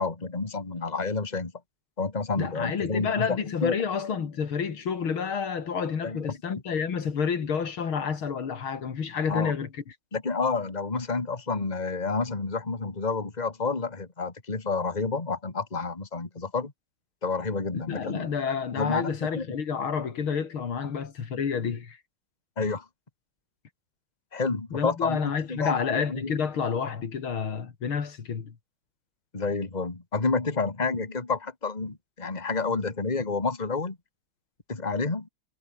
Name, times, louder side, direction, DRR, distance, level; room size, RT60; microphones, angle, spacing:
voice 1, 0.0-1.5 2.0-3.8 6.0-6.4 9.3-9.5 10.1-16.7 17.2-18.3 18.8-19.4 22.6-22.9 24.3-26.3 29.3-34.0 34.7-35.3, left 4 dB, 20° left, 2.4 m, -29 dB
voice 2, 2.4-9.7 17.7-22.0 24.7-28.5, left 6 dB, 80° left, 3.2 m, -29 dB
omnidirectional pair, 2.2 m